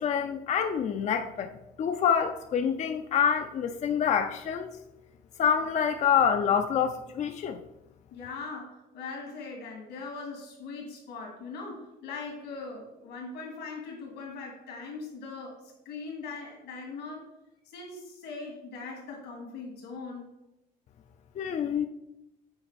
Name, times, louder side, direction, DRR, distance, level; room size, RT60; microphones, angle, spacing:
voice 1, 0.0-1.5 1.8-4.8 5.4-7.6 21.4-21.9, left 7 dB, 45° left, 7 dB, 0.4 m, -26 dB
voice 2, 8.1-17.3 17.6-20.3, left 4 dB, 90° left, 0 dB, 2.7 m, -40 dB
7.8 x 4.3 x 4.1 m, 0.90 s
cardioid pair, 110°, 17 cm